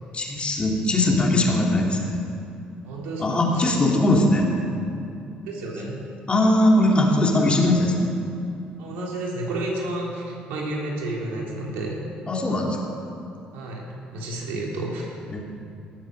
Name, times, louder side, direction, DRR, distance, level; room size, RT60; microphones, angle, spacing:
voice 1, 0.1-2.2 3.2-4.5 6.3-8.1 12.3-12.9 15.3-15.4, left 1 dB, 30° left, -1 dB, 3.1 m, -20 dB
voice 2, 2.8-3.8 5.5-6.0 8.8-12.0 13.5-13.8 14.1-15.1, right 2 dB, 80° right, -2 dB, 3.5 m, -31 dB
18.0 x 7.9 x 6.6 m, 2.7 s
supercardioid pair, 65°, 4 cm